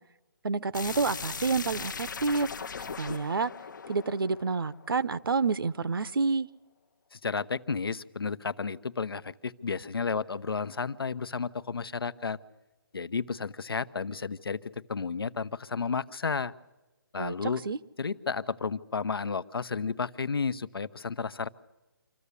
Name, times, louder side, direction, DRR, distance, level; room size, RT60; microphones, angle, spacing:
voice 1, 0.4-2.5 3.0-3.5 3.9-6.5 17.2-17.8, right 4 dB, 75° right, 0.8 m, -29 dB
sound 1, 0.7-5.5, left 6 dB, 55° left, 0.8 m, -39 dB
voice 2, 7.1-12.4 12.9-16.5 17.1-17.6 18.0-21.5, left 5 dB, 85° left, 0.9 m, -32 dB
26.0 x 14.0 x 8.3 m
hypercardioid pair, 165°, 12 cm